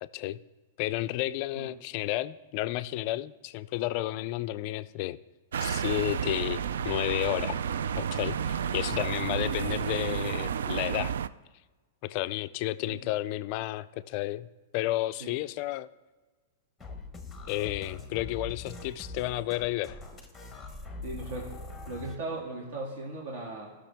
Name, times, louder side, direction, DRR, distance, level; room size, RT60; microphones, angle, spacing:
voice 1, 0.0-0.4 0.8-5.2 5.6-7.6 8.0-11.1 12.0-14.5 14.7-15.9 17.5-20.0, left 16 dB, 35° left, 13 dB, 0.3 m, -32 dB
sound 1, 5.5-11.3, right 7 dB, 90° right, 0.3 m, -31 dB
sound 2, 16.8-22.2, left 3 dB, 5° left, 0.9 m, -42 dB
voice 2, 21.0-21.6 21.9-23.7, right 2 dB, 65° right, -2 dB, 2.2 m, -38 dB
16.0 x 6.3 x 3.4 m, 1.3 s
supercardioid pair, 165°, 0 cm